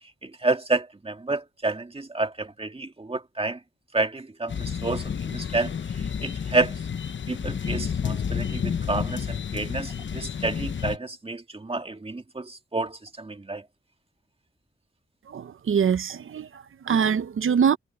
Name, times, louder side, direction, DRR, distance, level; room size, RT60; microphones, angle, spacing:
voice 1, 0.2-3.6 3.9-5.7 6.2-6.7 7.3-13.6, right 3 dB, 25° right, 1.9 m, -29 dB
sound 1, 4.5-11.0, left 7 dB, 65° left, 0.8 m, -30 dB
voice 2, 15.3-17.8, right 7 dB, 80° right, 0.6 m, -24 dB
wide cardioid pair, 110°, 21 cm